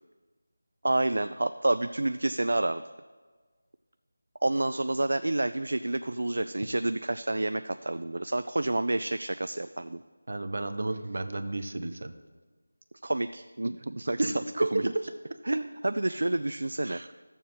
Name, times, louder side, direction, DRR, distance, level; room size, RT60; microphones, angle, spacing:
voice 1, 0.8-2.8 4.4-10.0 13.0-14.9 15.5-17.0, right 2 dB, 65° right, 10 dB, 0.3 m, -29 dB
voice 2, 10.3-12.2 14.2-14.3 14.6-15.0 15.5-15.6 16.8-17.1, right 2 dB, 50° right, 9 dB, 0.7 m, -31 dB
14.0 x 7.2 x 4.2 m, 1.4 s
figure-of-eight pair, 175°, 0 cm